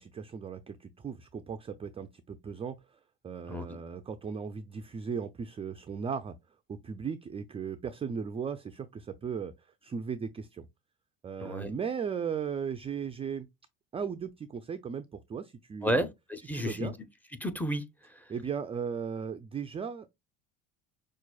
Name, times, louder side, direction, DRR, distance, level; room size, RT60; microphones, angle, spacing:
voice 1, 0.0-3.0 3.2-6.3 6.7-9.5 9.8-10.7 11.2-13.5 13.9-15.0 15.3-16.1 16.5-16.9 18.3-20.1, right 6 dB, 20° right, 0.4 m, -37 dB
voice 2, 11.4-11.7 15.8-16.9 17.4-18.3, equal, 5° left, 0.7 m, -32 dB
5.8 x 2.5 x 2.3 m
supercardioid pair, 105°, 30 cm